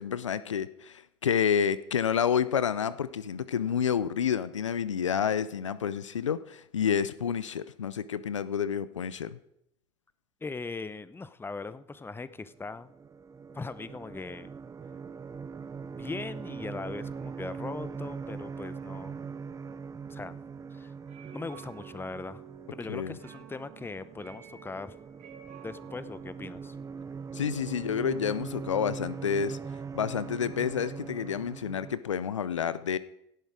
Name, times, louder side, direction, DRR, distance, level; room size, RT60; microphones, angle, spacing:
voice 1, 0.0-9.4 22.9-23.2 27.3-29.6 29.9-33.0, left 7 dB, 90° left, 17 dB, 0.5 m, -29 dB
voice 2, 10.4-12.9 13.5-14.5 15.8-19.3 19.7-19.8 20.1-20.4 20.7-20.9 21.3-22.4 22.7-25.0 25.6-26.7, left 3 dB, 15° left, 15 dB, 0.9 m, -40 dB
sound 1, 12.5-32.0, right 5 dB, 20° right, 0.5 m, -41 dB
sound 2, 19.2-29.0, right 10 dB, 50° right, 2.2 m, -53 dB
17.0 x 10.0 x 4.8 m, 0.79 s
hypercardioid pair, 70°, 15 cm